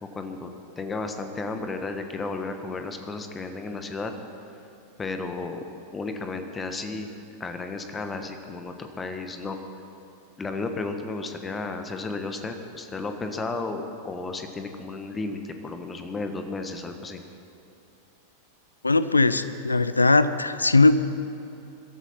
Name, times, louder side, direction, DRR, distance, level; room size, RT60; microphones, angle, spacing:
voice 1, 0.0-0.5 0.8-4.1 5.0-5.6 5.9-7.1 7.4-9.6 10.4-17.2, left 3 dB, 15° left, 6 dB, 1.4 m, -33 dB
voice 2, 18.8-20.9, left 3 dB, 80° left, 13 dB, 0.6 m, -19 dB
22.5 x 13.0 x 4.4 m, 2.9 s
figure-of-eight pair, 90°, 0 cm